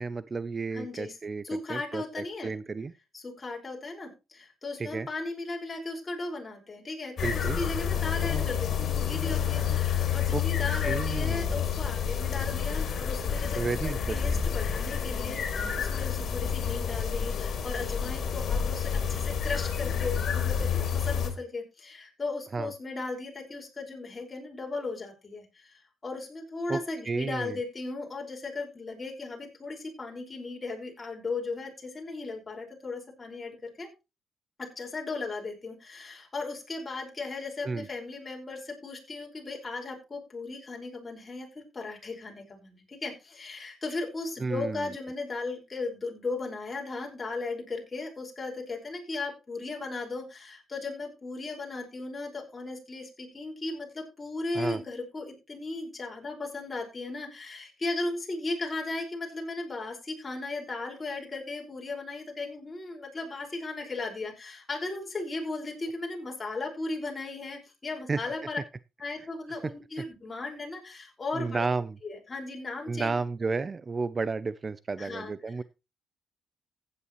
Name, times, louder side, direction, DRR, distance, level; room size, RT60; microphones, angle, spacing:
voice 1, 0.0-1.4 1.7-2.0 2.4-2.9 4.8-5.1 7.2-7.6 10.3-10.4 10.8-11.5 13.6-14.4 22.5-22.7 26.7-26.8 27.1-27.6 37.6-37.9 44.4-44.9 54.5-54.8 68.1-68.2 71.3-72.0 72.9-75.6, right 4 dB, 30° right, 18 dB, 0.5 m, -32 dB
voice 2, 0.7-1.2 1.4-2.5 3.1-33.9 34.6-68.6 69.0-71.7 72.0-73.2 75.0-75.5, left 3 dB, 25° left, 1 dB, 5.2 m, -36 dB
sound 1, 7.2-21.3, left 7 dB, 60° left, 3.3 m, -29 dB
15.5 x 9.6 x 3.1 m, 0.27 s
cardioid pair, 90°, 0 cm